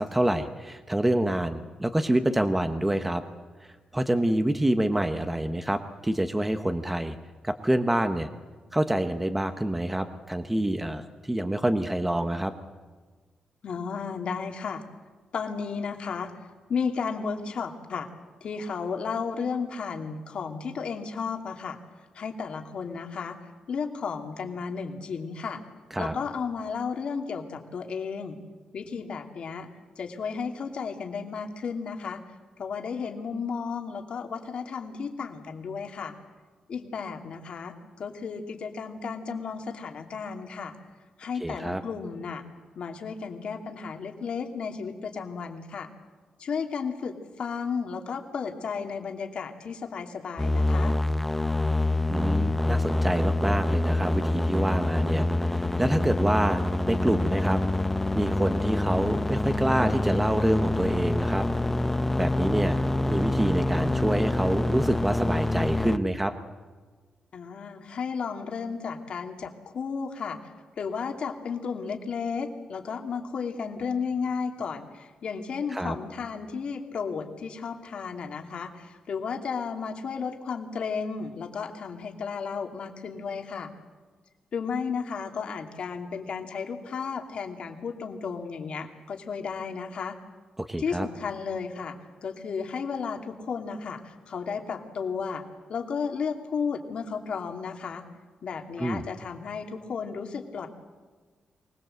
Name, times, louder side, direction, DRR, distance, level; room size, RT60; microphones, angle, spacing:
voice 1, 0.0-3.2 3.6-7.1 7.4-8.3 8.7-12.5 25.9-26.1 41.4-41.8 52.1-57.6 58.1-61.5 62.2-62.8 63.1-66.3 75.7-76.0 90.7-91.1 98.8-99.0, right 1 dB, 10° right, 8 dB, 1.1 m, -27 dB
voice 2, 13.6-14.8 15.3-16.3 16.7-18.1 18.4-21.8 22.1-23.4 23.7-25.6 26.0-28.4 28.7-29.7 30.0-32.2 32.6-36.1 36.7-40.7 41.2-42.4 42.8-45.9 46.4-51.0 67.3-70.4 70.8-83.7 84.5-90.2 90.8-92.0 92.2-95.4 95.7-98.0 98.4-100.7, left 5 dB, 60° left, 4 dB, 2.6 m, -33 dB
sound 1, 50.4-66.0, left 2 dB, 10° left, 0.8 m, -26 dB
24.5 x 20.0 x 7.9 m, 1.4 s
wide cardioid pair, 140°, 2 cm